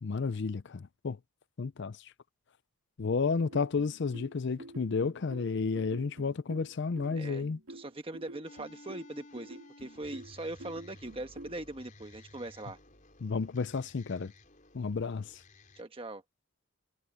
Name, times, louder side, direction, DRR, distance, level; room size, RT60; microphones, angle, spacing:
voice 1, 0.0-1.2 1.6-2.0 3.0-7.6 13.2-14.3 14.7-15.4, left 4 dB, 50° left, 0.5 m, -32 dB
sound 1, 3.4-11.6, right 1 dB, 75° right, 3.0 m, -49 dB
voice 2, 7.7-12.8 15.8-16.2, right 2 dB, 25° right, 1.2 m, -41 dB
sound 2, 8.4-15.8, left 2 dB, 35° left, 4.9 m, -55 dB
head